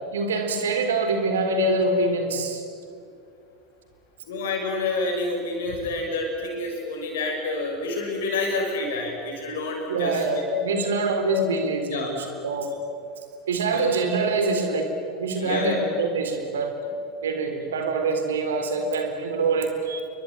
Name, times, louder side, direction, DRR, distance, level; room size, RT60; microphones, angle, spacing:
voice 1, 0.1-2.6 9.9-12.7 13.5-14.9 15.2-16.8 17.2-20.0, right 3 dB, 70° right, 6 dB, 3.9 m, -25 dB
voice 2, 4.2-10.2 10.7-10.9 11.9-12.1 15.4-15.8, left 2 dB, 65° left, 1 dB, 6.8 m, -28 dB
29.5 x 22.5 x 9.0 m, 2.4 s
figure-of-eight pair, 75°, 0 cm